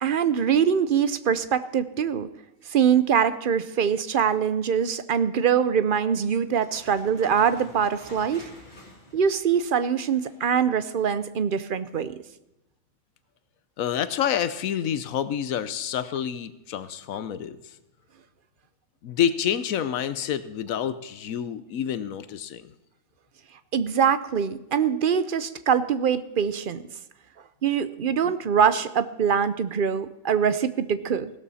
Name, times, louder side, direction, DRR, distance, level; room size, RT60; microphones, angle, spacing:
voice 1, 0.0-2.3 2.7-8.5 9.1-12.1 23.7-26.8 27.6-31.3, right 7 dB, 50° right, 13 dB, 0.7 m, -23 dB
sound 1, 6.5-10.6, left 1 dB, 35° left, 3.1 m, -49 dB
voice 2, 13.8-17.6 19.0-22.7, left 9 dB, 90° left, 13 dB, 1.2 m, -28 dB
16.5 x 12.5 x 4.2 m, 0.91 s
omnidirectional pair, 1.4 m